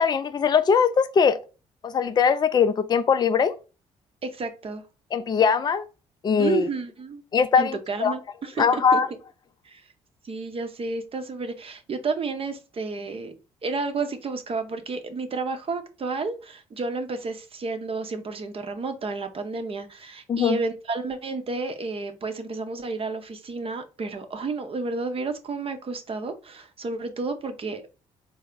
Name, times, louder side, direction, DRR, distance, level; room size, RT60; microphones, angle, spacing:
voice 1, 0.0-1.4 1.8-3.5 5.1-5.8 6.2-6.7 7.3-8.1 8.6-9.1 20.3-20.6, left 6 dB, 30° left, 0.4 m, -21 dB
voice 2, 4.2-4.8 6.4-7.2 7.6-9.0 9.6-9.8 10.2-13.4 13.6-27.9, right 4 dB, 40° right, 0.7 m, -31 dB
3.2 x 2.0 x 3.6 m
hypercardioid pair, 50°, 15 cm